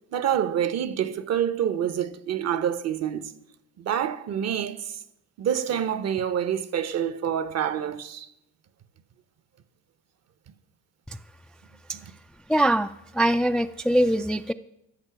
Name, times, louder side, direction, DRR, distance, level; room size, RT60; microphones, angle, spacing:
voice 1, 0.1-3.3 3.8-5.0 5.4-8.3, right 9 dB, 50° right, 0.9 m, -27 dB
voice 2, 12.5-14.5, right 1 dB, ahead, 0.3 m, -23 dB
13.5 x 6.7 x 5.8 m
supercardioid pair, 75°, 34 cm